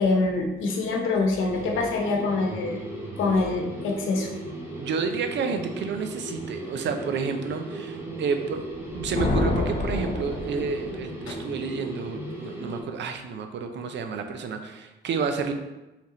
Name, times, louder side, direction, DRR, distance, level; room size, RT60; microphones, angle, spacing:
voice 1, 0.0-2.8 3.2-4.3 11.3-11.4, left 3 dB, 80° left, 1 dB, 0.9 m, -25 dB
sound 1, 1.5-12.8, right 1 dB, 10° right, 1.0 m, -37 dB
voice 2, 4.8-8.6 8.9-15.5, right 5 dB, 65° right, 6 dB, 0.6 m, -30 dB
Thunder, 8.7-11.1, left 2 dB, 35° left, 0.7 m, -28 dB
4.6 x 3.5 x 3.0 m, 1.0 s
cardioid pair, 90°, 20 cm